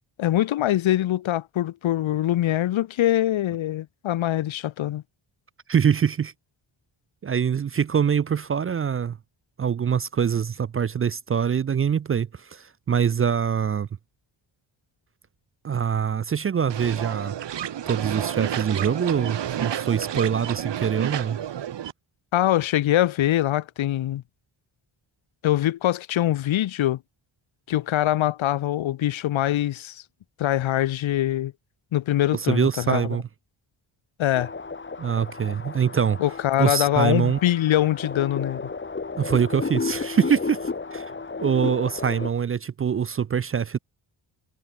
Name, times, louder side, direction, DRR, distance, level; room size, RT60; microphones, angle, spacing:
voice 1, 0.2-5.0 22.3-24.2 25.4-27.0 27.7-30.0 30.4-31.5 31.9-33.1 34.2-34.5 36.2-38.6, left 13 dB, 85° left, 1.0 m, -23 dB
voice 2, 5.7-6.3 7.2-9.2 9.6-13.9 15.6-17.4 17.9-21.4 32.3-33.2 35.0-36.2 36.6-37.4 39.2-41.1 41.4-43.8, right 7 dB, 30° right, 0.4 m, -24 dB
sound 1, 16.7-21.9, right 10 dB, 65° right, 1.8 m, -30 dB
sound 2, 34.3-42.3, left 4 dB, 25° left, 3.5 m, -33 dB
wide cardioid pair, 155°, 46 cm